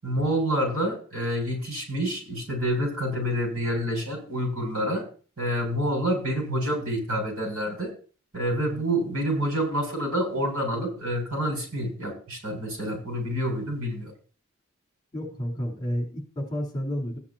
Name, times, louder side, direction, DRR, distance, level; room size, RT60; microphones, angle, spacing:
voice 1, 0.0-5.0 5.4-7.9 8.3-14.1, equal, 80° right, 2 dB, 7.7 m, -28 dB
voice 2, 8.5-8.8 15.1-17.2, equal, 20° left, -1 dB, 4.3 m, -31 dB
15.5 x 10.0 x 3.0 m, 0.39 s
head